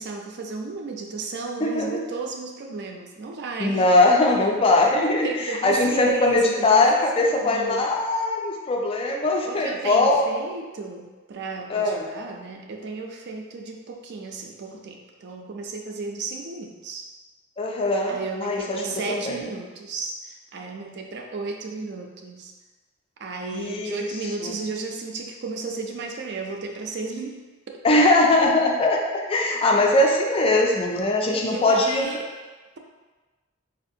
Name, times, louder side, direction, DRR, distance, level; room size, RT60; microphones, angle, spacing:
voice 1, 0.0-3.9 5.2-6.9 7.4-7.8 9.4-17.1 18.1-22.5 23.2-27.4 27.7-27.8 31.3-32.3, right 3 dB, 55° right, 1 dB, 0.4 m, -34 dB
voice 2, 1.6-2.0 3.6-5.3 5.6-10.3 11.7-12.1 17.6-19.4 23.5-24.0 24.4-24.5 27.8-32.1, left 2 dB, 30° left, 0 dB, 0.3 m, -21 dB
4.3 x 2.4 x 2.6 m, 1.3 s
head